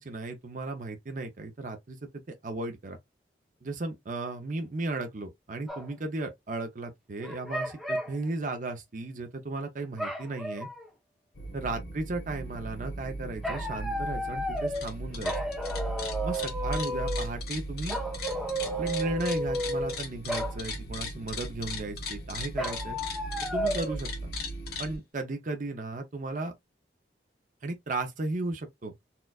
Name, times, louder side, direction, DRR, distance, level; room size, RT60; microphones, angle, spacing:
voice 1, 0.1-2.0 2.4-3.0 3.6-10.7 11.5-15.3 16.2-18.0 18.8-23.0 23.5-24.1 24.8-26.5 27.6-28.9, right 2 dB, 45° right, 0.6 m, -35 dB
sound 1, 5.7-5.9 7.2-8.2 10.0-10.9 13.4-14.9 15.2-17.3 17.9-20.0 20.3-20.6 22.6-23.9, equal, ahead, 0.9 m, -32 dB
sound 2, 11.3-25.0, right 2 dB, 85° left, 1.2 m, -39 dB
sound 3, 14.6-14.9 15.1-24.9, left 6 dB, 60° left, 1.3 m, -38 dB
4.3 x 2.3 x 2.3 m
head